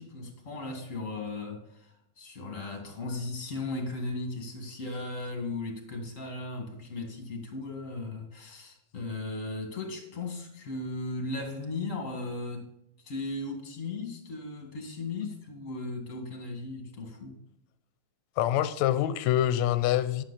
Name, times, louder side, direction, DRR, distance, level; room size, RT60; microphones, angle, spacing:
voice 1, 0.0-12.7 13.0-17.4, left 2 dB, 30° left, 2.1 m, -37 dB
voice 2, 18.4-20.2, left 12 dB, 75° left, 1.9 m, -25 dB
11.5 x 8.2 x 4.1 m
omnidirectional pair, 3.4 m